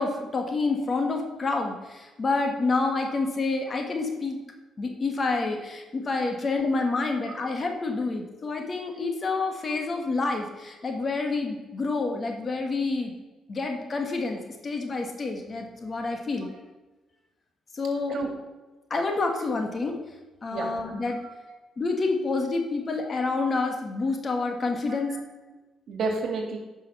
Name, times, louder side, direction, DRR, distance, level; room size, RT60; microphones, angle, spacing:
voice 1, 0.0-4.4 4.8-13.1 13.5-16.5 17.7-18.1 18.9-20.0 20.4-21.2 21.8-25.2, left 3 dB, 40° left, 3 dB, 1.6 m, -28 dB
voice 2, 21.1-21.6 24.8-25.2 25.5-25.6 25.9-26.6, right 3 dB, 60° right, 2 dB, 2.2 m, -32 dB
9.1 x 5.5 x 5.6 m, 1.2 s
cardioid pair, 90°, 0 cm